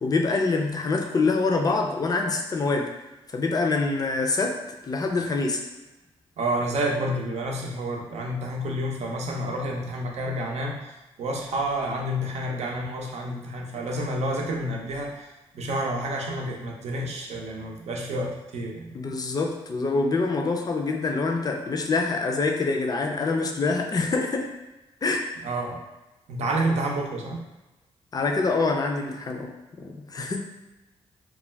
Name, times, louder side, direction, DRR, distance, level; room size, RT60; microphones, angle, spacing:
voice 1, 0.0-2.9 3.3-4.6 4.8-5.6 18.9-24.5 25.0-25.2 28.1-29.5 29.8-30.4, left 3 dB, 35° left, 2 dB, 0.4 m, -25 dB
voice 2, 6.4-19.2 25.4-25.8 26.3-27.4, right 1 dB, 65° right, 0 dB, 0.6 m, -29 dB
2.3 x 2.2 x 3.2 m, 1.0 s
supercardioid pair, 55°, 12 cm